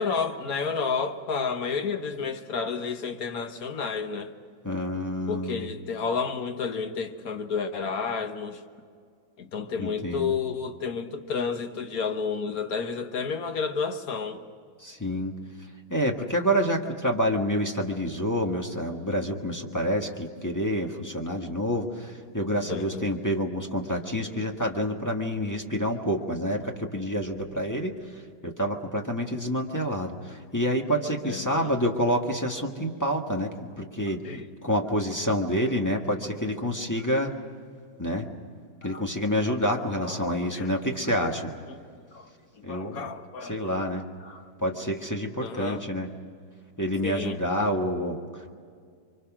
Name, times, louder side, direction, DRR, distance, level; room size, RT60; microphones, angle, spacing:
voice 1, 0.0-4.3 5.3-8.6 9.4-14.4 22.7-23.0 31.2-31.7 34.2-34.5 38.8-39.0 40.0-40.7 41.7-41.8 42.1-42.3 42.6-43.8 44.2-44.4 45.4-45.8 47.0-47.4, left 5 dB, 50° left, 1.5 m, -31 dB
voice 2, 4.6-5.7 9.8-10.4 14.8-15.3 15.9-27.9 28.4-34.2 34.6-37.3 38.0-38.3 38.8-41.5 42.6-43.0 43.4-44.0 44.6-46.1 46.8-48.5, equal, 10° left, 1.4 m, -28 dB
30.0 x 24.0 x 6.1 m
omnidirectional pair, 2.2 m